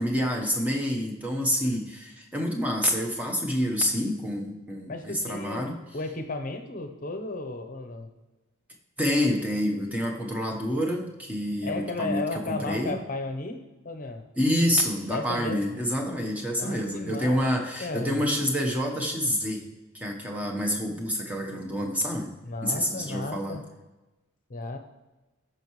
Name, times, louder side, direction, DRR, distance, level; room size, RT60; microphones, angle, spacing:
voice 1, 0.0-5.8 9.0-13.0 14.4-19.7 19.9-22.3 22.6-23.6, equal, 5° right, 0 dB, 1.1 m, -27 dB
voice 2, 4.9-8.1 11.6-13.6 13.8-14.2 15.1-15.6 16.6-18.2 22.4-23.6 24.5-24.8, left 3 dB, 40° left, 6 dB, 0.9 m, -34 dB
14.0 x 5.7 x 3.2 m, 1.1 s
head